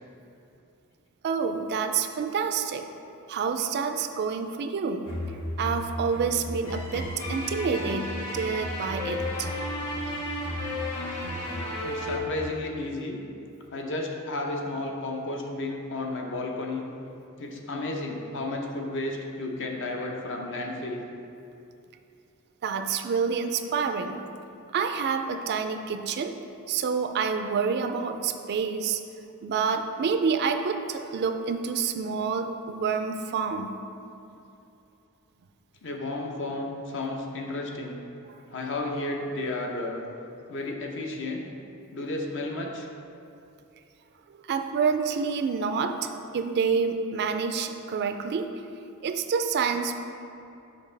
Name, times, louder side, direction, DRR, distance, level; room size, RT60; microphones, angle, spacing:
voice 1, 1.2-2.8 3.3-5.1 5.6-9.5 22.6-24.2 24.7-26.3 26.7-29.0 29.4-33.8 44.5-48.5 49.0-50.0, right 5 dB, 50° right, 6 dB, 0.3 m, -28 dB
sound 1, 5.0-12.2, left 1 dB, 85° left, 1.0 m, -33 dB
voice 2, 11.8-13.2 13.7-16.9 17.4-21.0 35.8-38.1 38.5-40.0 40.5-41.5 41.9-42.9, left 2 dB, 60° left, 1 dB, 0.7 m, -32 dB
6.8 x 5.2 x 3.3 m, 2.7 s
head